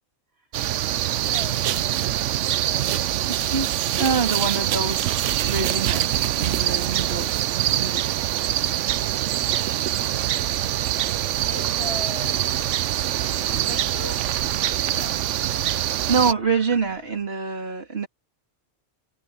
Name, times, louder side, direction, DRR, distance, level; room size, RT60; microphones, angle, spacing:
sound 1, 0.5-16.3, right 12 dB, 85° right, 0.9 m, -24 dB
voice 1, 1.2-2.4 2.7-3.1 11.4-12.4 13.6-14.2 14.9-15.2, left 2 dB, 65° left, 7.1 m, -38 dB
voice 2, 3.3-5.2 5.4-7.5 7.8-8.0 16.1-18.1, right 5 dB, 60° right, 2.9 m, -26 dB
sound 2, 8.0-17.3, equal, 15° left, 6.8 m, -45 dB
omnidirectional pair, 1.2 m